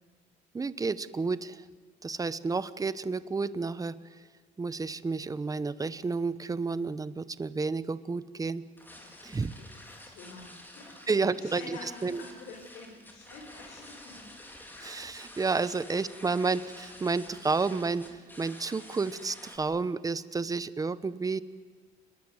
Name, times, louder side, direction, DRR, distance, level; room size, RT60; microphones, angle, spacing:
voice 1, 0.5-1.6 2.0-4.0 4.6-8.6 9.2-9.5 11.1-12.2 14.8-18.1 18.4-21.4, right 4 dB, 20° right, 15 dB, 1.1 m, -31 dB
sound 1, 8.8-19.6, left 1 dB, 10° left, 4.5 m, -49 dB
voice 2, 9.6-14.2 15.5-15.7, left 3 dB, 80° left, 0 dB, 5.3 m, -48 dB
29.0 x 21.0 x 8.2 m, 1.5 s
cardioid pair, 110°, 17 cm